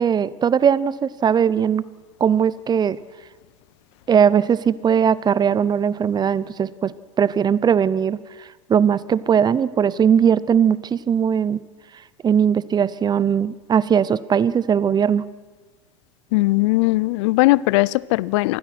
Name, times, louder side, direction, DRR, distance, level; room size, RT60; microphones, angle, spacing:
voice 1, 0.0-1.9 2.2-3.0 4.1-11.6 12.2-15.3, right 7 dB, 25° right, 19 dB, 0.8 m, -19 dB
voice 2, 16.3-18.6, left 21 dB, 65° left, 23 dB, 0.6 m, -19 dB
26.5 x 20.0 x 6.1 m, 1.3 s
hypercardioid pair, 90°, 16 cm